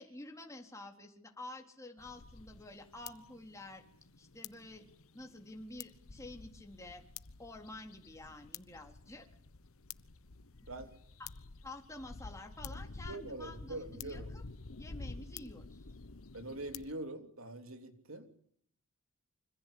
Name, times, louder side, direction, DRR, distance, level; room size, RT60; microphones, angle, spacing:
voice 1, 0.0-3.8 4.2-4.9 5.1-7.0 7.4-9.3 11.2-11.3 11.6-14.4 14.8-15.9, left 2 dB, 15° left, 3 dB, 3.8 m, -49 dB
sound 1, 2.0-16.9, left 4 dB, 70° left, 1.1 m, -50 dB
voice 2, 13.0-14.3 16.3-18.4, right 2 dB, 70° right, 7 dB, 3.2 m, -44 dB
26.5 x 25.5 x 8.6 m, 0.65 s
head